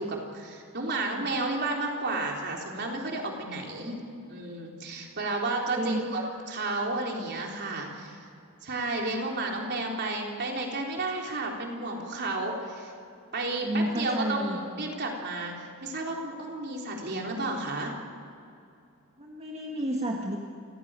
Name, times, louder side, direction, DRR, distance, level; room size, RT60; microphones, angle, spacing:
voice 1, 0.0-4.0 4.3-6.2 6.5-8.3 8.6-12.9 13.3-17.9, right 2 dB, 50° right, 0 dB, 3.8 m, -32 dB
voice 2, 5.7-6.0 13.6-14.9 19.2-20.4, equal, 30° right, -1 dB, 1.9 m, -31 dB
28.0 x 16.0 x 9.0 m, 2.5 s
head